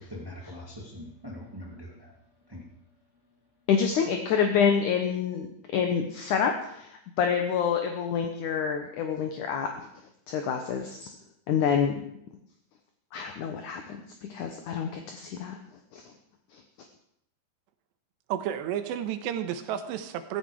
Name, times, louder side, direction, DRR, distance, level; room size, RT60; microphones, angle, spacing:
voice 1, 0.0-2.1 2.5-2.6, left 1 dB, 35° right, 0 dB, 0.3 m, -42 dB
voice 2, 3.7-9.9 10.3-11.1 11.5-12.0 13.1-14.0 14.3-15.6 15.9-16.0, left 7 dB, 65° left, 4 dB, 2.1 m, -27 dB
voice 3, 18.3-20.4, right 10 dB, 85° right, 9 dB, 3.3 m, -31 dB
16.0 x 15.5 x 4.9 m, 0.74 s
omnidirectional pair, 4.9 m